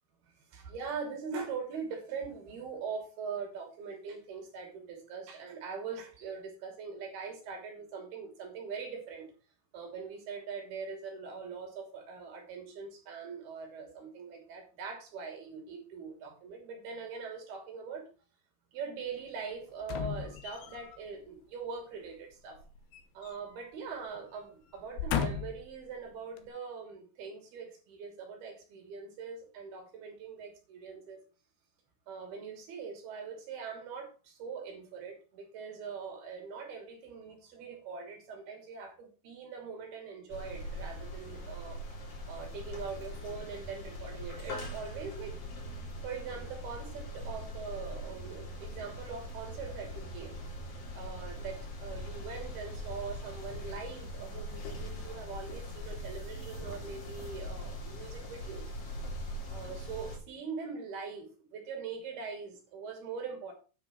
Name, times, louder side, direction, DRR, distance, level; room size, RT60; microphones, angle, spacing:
voice 1, 0.4-9.3 9.7-18.1 18.7-22.6 23.1-31.2 32.1-41.8 42.3-45.4 46.0-50.3 50.9-58.7 59.5-63.5, right 5 dB, 65° right, 3 dB, 4.7 m, -42 dB
sound 1, 19.8-21.0 22.5-23.7 24.0-24.2 24.8-25.7 26.4-26.5, left 8 dB, 80° left, 3.4 m, -36 dB
sound 2, 40.3-60.2, equal, 50° left, 4.5 m, -41 dB
10.0 x 6.0 x 5.9 m, 0.35 s
omnidirectional pair, 4.9 m